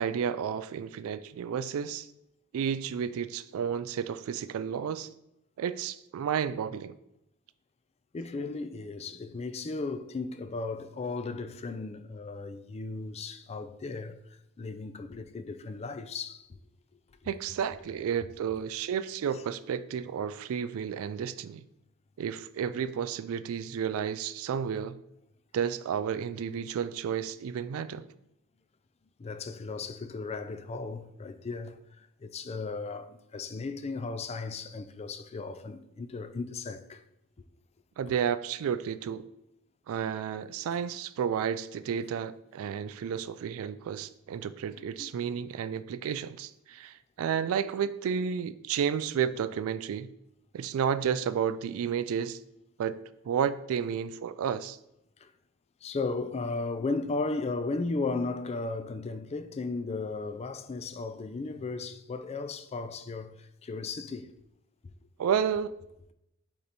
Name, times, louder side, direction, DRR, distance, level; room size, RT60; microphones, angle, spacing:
voice 1, 0.0-2.1 2.5-5.1 5.6-7.0 17.3-21.6 22.2-25.0 25.5-28.1 38.0-39.2 39.9-50.1 50.5-52.4 52.8-53.0 53.2-54.8 65.2-65.7, right 8 dB, 65° right, 0.3 m, -31 dB
voice 2, 8.1-14.2 14.6-16.6 29.2-37.0 45.0-45.1 55.2-55.3 55.8-64.3 64.8-64.9, left 3 dB, 30° left, 0.4 m, -35 dB
8.3 x 3.0 x 4.0 m
head